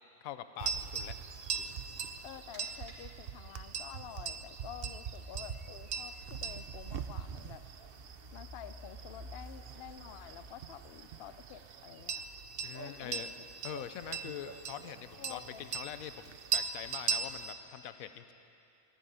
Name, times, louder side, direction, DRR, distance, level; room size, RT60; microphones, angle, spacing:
voice 1, 0.2-1.2 12.6-13.3 13.6-18.3, left 10 dB, 85° left, 11 dB, 1.0 m, -44 dB
sound 1, 0.6-17.5, right 6 dB, 55° right, 0.7 m, -40 dB
sound 2, 2.1-11.8, right 1 dB, 85° right, 2.6 m, -63 dB
voice 2, 2.2-7.6 8.3-12.3 12.8-13.5 15.1-15.7, left 10 dB, 60° left, 12 dB, 0.6 m, -49 dB
sound 3, 4.5-11.2, equal, 30° right, 2.8 m, -53 dB
15.0 x 10.5 x 9.2 m, 2.6 s
omnidirectional pair, 1.5 m